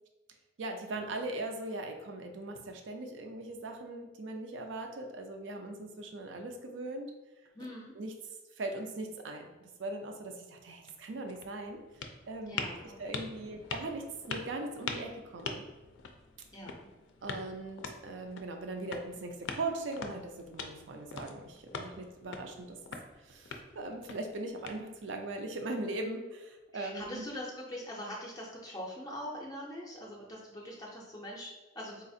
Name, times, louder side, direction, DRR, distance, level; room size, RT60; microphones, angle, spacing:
voice 1, 0.6-7.1 7.9-8.1 8.6-11.8 12.3-12.6 13.0-15.6 17.2-22.8 23.2-27.2, right 2 dB, 85° right, 4 dB, 0.4 m, -40 dB
voice 2, 7.5-7.9 12.5-13.5 16.5-16.9 26.7-32.0, equal, 20° left, -3 dB, 0.4 m, -43 dB
sound 1, 10.8-25.2, left 5 dB, 85° left, 0.4 m, -44 dB
4.0 x 2.4 x 2.6 m, 1.2 s
head